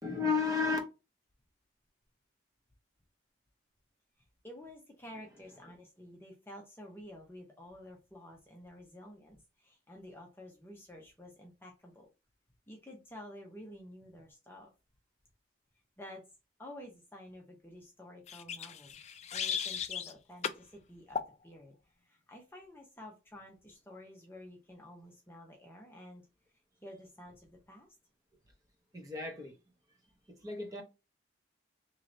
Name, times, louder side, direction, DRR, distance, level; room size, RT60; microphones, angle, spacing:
voice 1, 0.0-0.8 28.9-29.5 30.3-30.8, left 4 dB, 20° right, 0.9 m, -32 dB
voice 2, 4.4-12.1 12.7-14.7 16.0-16.2 16.6-19.0 19.3-21.8 22.0-26.2 26.8-27.9, left 1 dB, 10° left, 0.7 m, -51 dB
sound 1, 18.3-20.1 20.4-20.6 21.1-21.3, left 7 dB, 35° left, 0.3 m, -36 dB
3.1 x 2.9 x 3.8 m
head